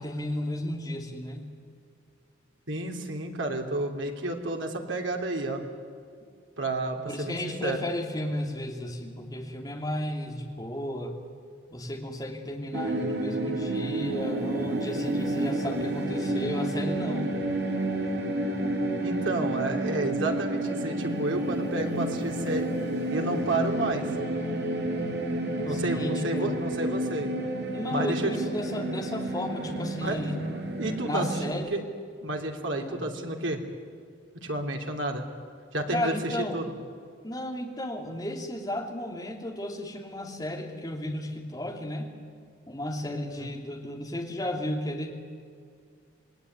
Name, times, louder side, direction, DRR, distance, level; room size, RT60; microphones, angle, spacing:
voice 1, 0.0-1.5 7.0-11.1 11.7-17.3 25.7-26.5 27.7-30.4 31.0-31.7 32.7-33.0 35.9-36.6 37.2-42.1 42.7-45.1, left 1 dB, 20° left, 1 dB, 2.9 m, -33 dB
voice 2, 2.7-5.6 6.6-7.8 19.0-22.7 23.1-24.1 25.6-27.3 27.9-28.3 30.0-30.2 30.8-31.8 32.2-33.6 34.4-35.2 35.7-36.6 43.4-43.5, right 2 dB, 90° right, 2 dB, 3.2 m, -31 dB
sound 1, 12.7-31.5, right 1 dB, 60° right, 3.1 m, -30 dB
27.0 x 19.5 x 9.6 m, 2.2 s
head